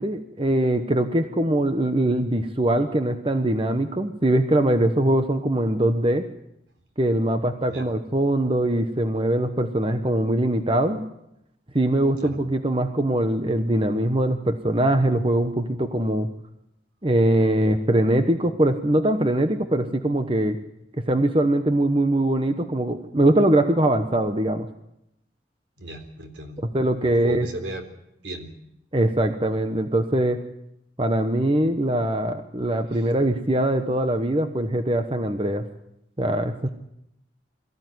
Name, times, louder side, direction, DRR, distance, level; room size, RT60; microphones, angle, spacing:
voice 1, 0.0-6.2 7.0-11.0 11.7-16.3 17.0-20.6 21.1-24.7 26.7-27.5 28.9-30.4 31.0-35.6 36.2-36.7, right 1 dB, 30° right, 8 dB, 1.1 m, -22 dB
voice 2, 25.8-26.6 27.0-27.9 28.2-28.5 32.9-33.0, right 1 dB, 80° right, 5 dB, 3.7 m, -35 dB
22.5 x 15.0 x 9.5 m, 0.82 s
head